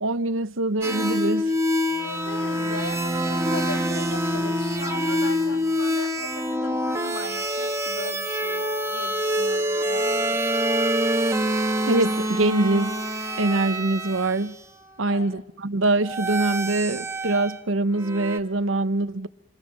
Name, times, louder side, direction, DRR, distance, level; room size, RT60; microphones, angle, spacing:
voice 1, 0.0-1.5 11.8-12.9 13.4-14.6 15.0-19.3, right 2 dB, 90° right, 1.0 m, -24 dB
sound 1, 0.8-14.4 16.0-17.6 18.0-18.4, equal, 15° right, 1.7 m, -26 dB
voice 2, 2.0-10.3 15.1-15.4, left 2 dB, 85° left, 2.8 m, -38 dB
29.0 x 26.5 x 6.2 m
head